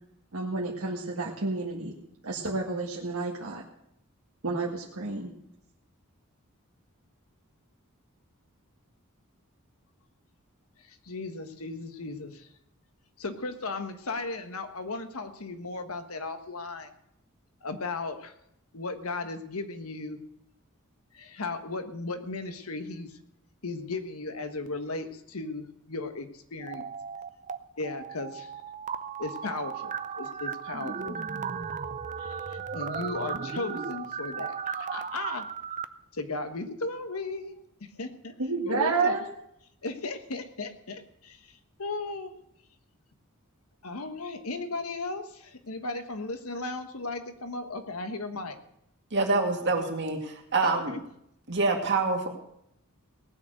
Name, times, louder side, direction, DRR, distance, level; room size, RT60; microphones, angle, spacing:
voice 1, 0.3-2.0 2.2-3.6 4.4-5.3 38.4-39.2, right 4 dB, 80° right, -2 dB, 1.8 m, -30 dB
voice 2, 10.8-12.5 13.2-16.9 17.6-18.3 18.7-20.2 21.1-23.2 23.6-26.8 27.8-28.5 29.2-31.2 32.2-35.5 36.1-37.5 37.8-38.3 38.6-39.2 39.8-42.3 43.8-48.6 50.6-51.0, left 3 dB, 85° left, 8 dB, 1.3 m, -36 dB
sound 1, 26.6-27.6 27.8-35.8, right 6 dB, 35° right, 0.6 m, -36 dB
voice 3, 49.1-51.0 51.5-52.3, right 3 dB, 55° right, 2 dB, 2.4 m, -26 dB
18.5 x 6.4 x 8.0 m, 0.76 s
head